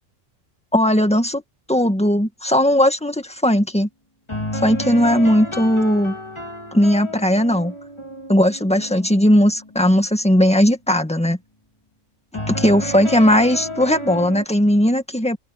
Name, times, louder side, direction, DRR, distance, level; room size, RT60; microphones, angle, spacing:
voice 1, 0.7-1.4 1.7-3.9 4.6-6.1 6.7-7.7 8.3-11.4 12.5-15.4, equal, 5° left, 1.8 m, -17 dB
sound 1, 4.3-9.6 12.3-14.5, left 1 dB, 20° left, 2.4 m, -31 dB
open air
omnidirectional pair, 1.3 m